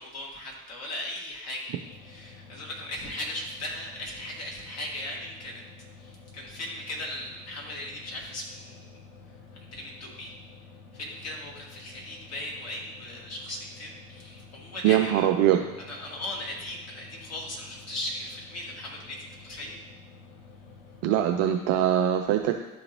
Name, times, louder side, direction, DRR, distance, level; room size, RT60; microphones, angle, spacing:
voice 1, 0.0-1.7 2.0-5.6 6.0-8.9 9.7-10.3 10.9-15.3 15.8-19.8, left 1 dB, 35° left, -2 dB, 2.0 m, -38 dB
sound 1, 1.7-21.5, left 4 dB, 60° left, 1.0 m, -50 dB
voice 2, 14.8-15.6 21.0-22.6, right 11 dB, 35° right, 4 dB, 0.4 m, -22 dB
11.0 x 3.7 x 3.0 m, 1.1 s
figure-of-eight pair, 65°, 47 cm